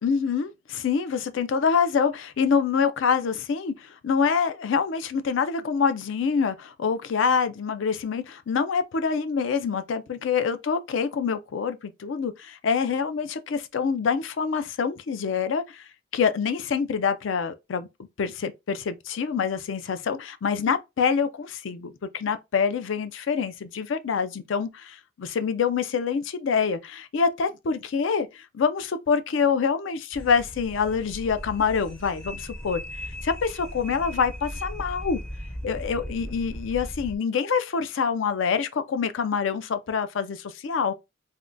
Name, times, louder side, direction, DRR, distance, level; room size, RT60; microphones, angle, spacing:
voice 1, 0.0-17.9 18.2-35.2 35.6-40.9, left 6 dB, 65° left, 0.4 m, -26 dB
sound 1, 30.1-37.2, equal, 5° left, 0.4 m, -38 dB
3.5 x 2.2 x 2.5 m
head